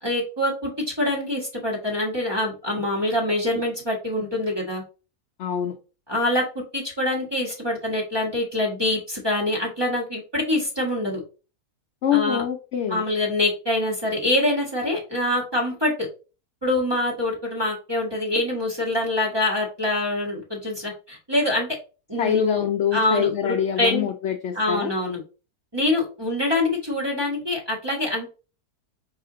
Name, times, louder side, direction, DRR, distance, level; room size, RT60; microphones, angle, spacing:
voice 1, 0.0-0.7 1.0-4.8 6.1-11.2 12.1-12.4 12.9-15.9 16.6-21.7 22.1-22.6 22.9-24.1 24.5-25.2 25.7-28.3, left 1 dB, 20° right, -2 dB, 1.1 m, -25 dB
voice 2, 5.4-5.8 12.0-13.0 22.2-24.9, left 9 dB, 75° left, 4 dB, 0.6 m, -25 dB
5.0 x 2.4 x 3.7 m, 0.34 s
omnidirectional pair, 1.7 m